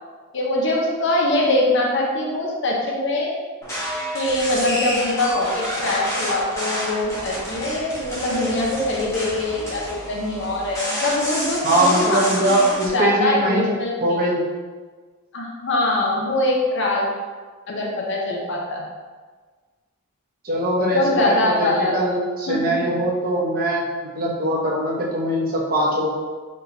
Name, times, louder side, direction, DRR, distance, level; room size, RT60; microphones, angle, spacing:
voice 1, 0.3-3.3 4.1-14.2 15.3-17.1 17.7-18.9 20.9-22.0 22.5-22.8, left 2 dB, 55° left, -2 dB, 0.7 m, -23 dB
sound 1, 3.6-12.9, equal, 15° left, 0.9 m, -29 dB
voice 2, 11.6-13.7 14.0-14.5 20.4-26.1, right 1 dB, 40° right, -4 dB, 0.8 m, -21 dB
4.3 x 3.2 x 2.7 m, 1.5 s
head